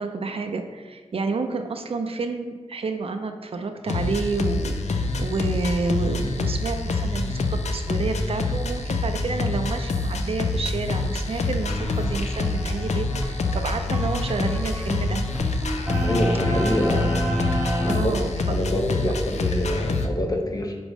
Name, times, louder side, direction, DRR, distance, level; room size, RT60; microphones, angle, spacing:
voice 1, 0.0-15.2 17.9-18.3, right 3 dB, 55° right, 6 dB, 0.4 m, -29 dB
sound 1, 3.9-20.1, left 3 dB, 70° left, 0.4 m, -26 dB
sound 2, 11.6-18.0, equal, 10° right, 0.8 m, -29 dB
voice 2, 16.0-17.2 17.8-20.8, left 1 dB, 30° left, 2 dB, 0.6 m, -26 dB
5.1 x 2.0 x 4.8 m, 1.4 s
wide cardioid pair, 75°, 12 cm